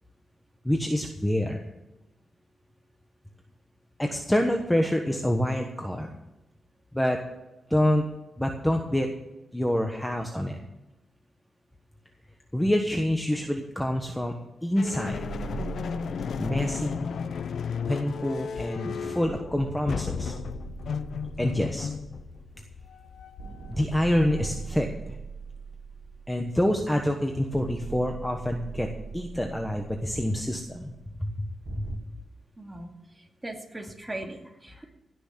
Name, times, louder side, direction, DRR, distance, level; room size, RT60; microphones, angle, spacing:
voice 1, 0.6-1.6 4.0-6.1 6.9-7.2 7.7-8.0 8.4-9.1 9.5-10.6 12.5-14.3 14.6-15.3 16.4-17.1 17.9-20.3 21.4-21.9 23.7-25.1 26.3-28.9 29.1-30.9 31.2-32.0 34.0-34.1 34.7-34.8, left 1 dB, 5° left, 3 dB, 1.2 m, -27 dB
sound 1, 14.8-24.9, left 6 dB, 70° left, 0.5 m, -35 dB
sound 2, 15.1-18.7 19.2-23.0 23.4-27.0 27.5-32.0, right 5 dB, 70° right, 1.5 m, -42 dB
voice 2, 32.6-32.9 33.4-34.8, right 1 dB, 15° right, 2 dB, 2.3 m, -38 dB
16.5 x 6.3 x 7.4 m, 1.0 s
wide cardioid pair, 105°, 0 cm